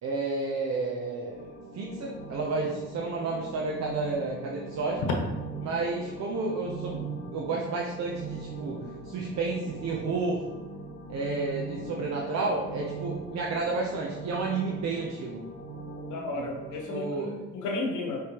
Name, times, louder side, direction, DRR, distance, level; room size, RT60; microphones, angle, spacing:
voice 1, 0.0-5.0 5.6-10.4 11.1-15.4 16.3-16.5 16.9-17.4, right 3 dB, 60° right, -2 dB, 0.7 m, -31 dB
sound 1, 1.3-16.8, right 3 dB, 35° left, 1.0 m, -41 dB
voice 2, 16.1-18.2, left 2 dB, 75° left, 1 dB, 1.0 m, -33 dB
5.2 x 3.3 x 2.9 m, 1.2 s
cardioid pair, 90°, 30 cm